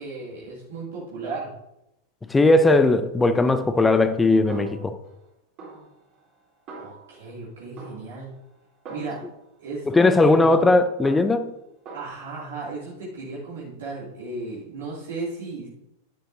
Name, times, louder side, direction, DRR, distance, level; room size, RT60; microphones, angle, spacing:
voice 1, 0.0-1.5 6.8-8.3 8.9-9.2 9.6-10.6 11.9-15.7, right 3 dB, 60° right, -6 dB, 2.6 m, -35 dB
voice 2, 2.3-5.0 9.9-11.5, left 2 dB, 10° left, 11 dB, 0.7 m, -18 dB
Snare drum, 3.4-4.2 4.5-5.3 5.6-7.4 7.8-9.4 9.9-11.5 11.9-12.1, right 3 dB, 35° right, 3.5 m, -43 dB
10.5 x 9.3 x 2.7 m, 0.87 s
figure-of-eight pair, 90°, 0 cm